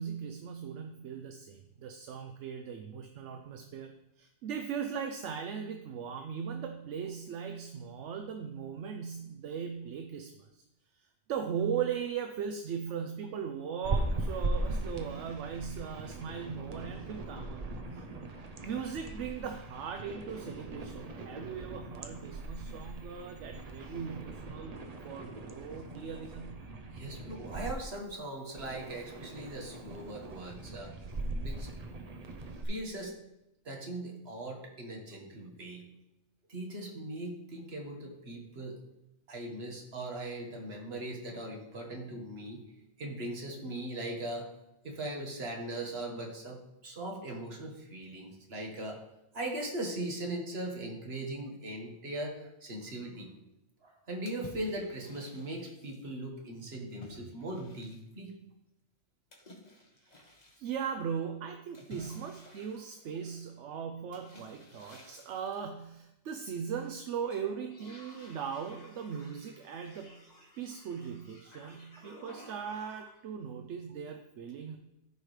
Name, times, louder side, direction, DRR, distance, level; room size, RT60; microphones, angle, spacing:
voice 1, 0.0-10.6 11.0-17.6 17.9-18.0 18.6-26.6 60.0-60.3 60.6-70.2 70.6-74.8, right 7 dB, 80° right, 5 dB, 1.0 m, -39 dB
sound 1, 13.8-27.7 28.5-32.6, right 2 dB, 40° right, 0.7 m, -39 dB
voice 2, 26.9-30.9 31.3-31.7 32.6-33.1 33.7-35.9 36.5-38.8 39.3-42.6 43.0-44.5 44.8-49.0 49.3-53.3 53.8-58.3 71.6-71.7, right 1 dB, 60° right, 1 dB, 1.7 m, -39 dB
sound 2, 54.3-56.1 57.0-58.3 59.3-60.7 61.7-63.4 64.1-65.6 66.3-66.9 67.2-73.2, left 1 dB, 35° left, 1.5 m, -54 dB
14.0 x 4.8 x 3.3 m, 0.89 s
omnidirectional pair, 1.2 m